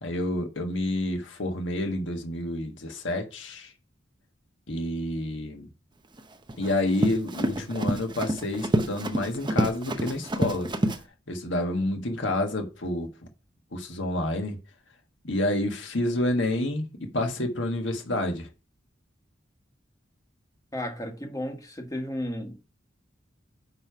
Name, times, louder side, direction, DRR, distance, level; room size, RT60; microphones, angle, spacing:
voice 1, 0.0-3.7 4.7-5.7 6.6-10.7 11.3-13.1 13.7-14.6 15.2-18.5, left 1 dB, 70° left, 1.6 m, -29 dB
Run, 6.2-11.0, right 1 dB, 25° right, 0.8 m, -28 dB
voice 2, 20.7-22.5, left 1 dB, 20° left, 1.4 m, -33 dB
9.8 x 3.3 x 5.7 m
head